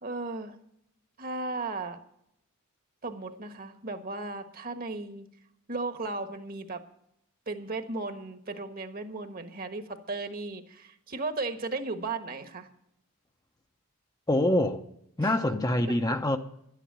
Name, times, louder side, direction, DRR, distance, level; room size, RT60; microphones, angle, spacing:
voice 1, 0.0-0.6 1.2-2.0 3.0-5.3 5.7-6.8 7.5-12.7 15.2-15.3, right 3 dB, 40° right, 1.3 m, -35 dB
voice 2, 14.3-14.8 15.2-16.4, left 1 dB, 15° left, 0.7 m, -25 dB
12.0 x 10.0 x 7.5 m
head